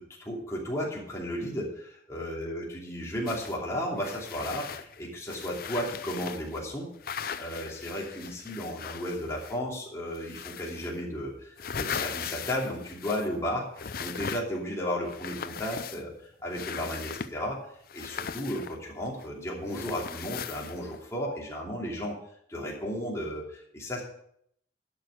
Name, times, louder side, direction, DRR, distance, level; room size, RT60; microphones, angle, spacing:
voice 1, 0.0-6.9 7.4-17.6 17.9-22.1 22.5-24.0, equal, 15° left, -3 dB, 2.8 m, -34 dB
sound 1, 3.3-3.6 4.0-6.6 7.0-9.7 10.1-11.0 11.4-13.4 13.8-14.7 15.1-16.2 16.5-17.4 17.9-19.3 19.7-21.0, left 7 dB, 50° left, 0.5 m, -39 dB
11.5 x 6.3 x 6.3 m, 0.69 s
head